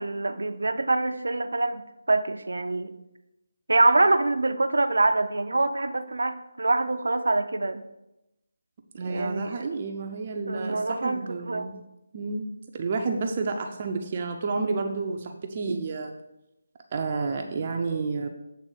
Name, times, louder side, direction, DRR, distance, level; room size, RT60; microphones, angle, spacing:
voice 1, 0.0-1.8 2.1-3.0 3.7-7.8 9.0-9.5 10.5-11.7 15.7-15.8, right 2 dB, 80° right, 9 dB, 0.6 m, -25 dB
voice 2, 8.9-11.8 12.1-12.5 12.7-16.1 16.9-18.3, right 4 dB, 35° right, 3 dB, 0.6 m, -30 dB
8.0 x 3.3 x 6.2 m, 0.92 s
figure-of-eight pair, 165°, 0 cm